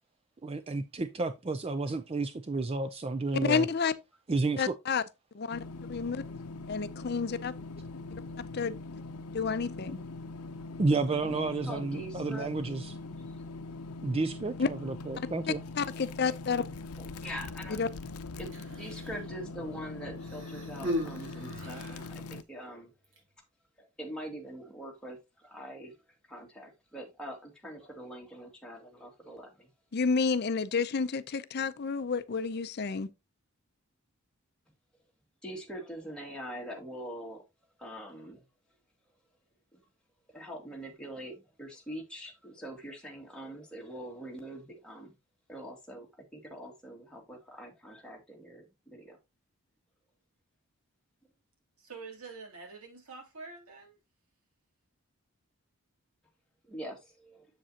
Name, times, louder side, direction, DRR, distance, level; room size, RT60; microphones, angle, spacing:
voice 1, 0.4-3.7 4.3-4.7 10.8-12.9 14.0-15.6, right 3 dB, 25° right, 0.4 m, -31 dB
voice 2, 3.4-3.9 4.6-5.0 5.3-5.6 5.9-6.2 6.7-7.5 8.5-8.8 9.3-10.0 14.6-14.7 15.8-16.6 17.7-17.9 29.9-33.1, left 5 dB, 45° left, 0.5 m, -30 dB
sound 1, 5.5-22.4, left 3 dB, 90° left, 0.6 m, -42 dB
voice 3, 10.9-12.5 17.2-17.8 18.4-22.9 23.8-26.0 26.3-29.7 35.4-37.4 37.8-38.4 39.7-39.8 40.3-45.1 45.5-46.1 46.3-49.2 56.7-57.5, equal, 5° left, 2.1 m, -43 dB
Human voice, 18.4-19.3 20.2-22.1 23.0-23.2, left 1 dB, 55° right, 3.2 m, -37 dB
voice 4, 51.8-54.0, right 4 dB, 80° right, 3.0 m, -46 dB
7.5 x 7.4 x 2.8 m
head